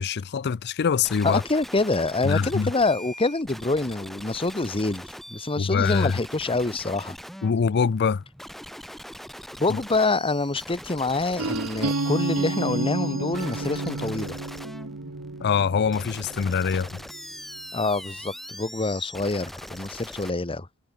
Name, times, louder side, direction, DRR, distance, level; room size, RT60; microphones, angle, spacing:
voice 1, 0.0-1.4 2.2-2.7 5.6-6.2 7.4-8.2 9.7-9.8 15.4-16.9, left 6 dB, 50° left, 0.5 m, -24 dB
sound 1, 1.0-20.3, equal, ahead, 3.7 m, -42 dB
voice 2, 1.2-5.0 5.3-7.1 9.6-14.4 17.7-20.7, left 3 dB, 25° left, 1.2 m, -26 dB
sound 2, 11.4-17.2, right 2 dB, 75° right, 1.4 m, -30 dB
head